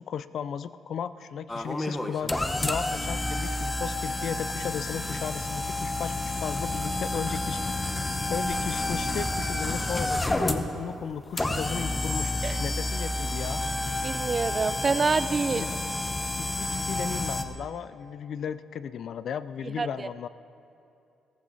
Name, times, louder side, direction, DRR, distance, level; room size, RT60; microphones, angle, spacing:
voice 1, 0.0-7.6 8.3-12.3 12.6-13.6 15.5-15.8 16.4-20.3, left 8 dB, 65° left, 15 dB, 0.4 m, -35 dB
sound 1, 1.5-17.4, left 2 dB, 15° left, 0.8 m, -30 dB
sound 2, 4.6-9.6, equal, 80° left, 1.9 m, -52 dB
voice 2, 14.0-15.6 19.8-20.1, right 4 dB, 35° right, 14 dB, 0.5 m, -27 dB
14.5 x 14.5 x 4.1 m, 2.7 s
cardioid pair, 90°, 0 cm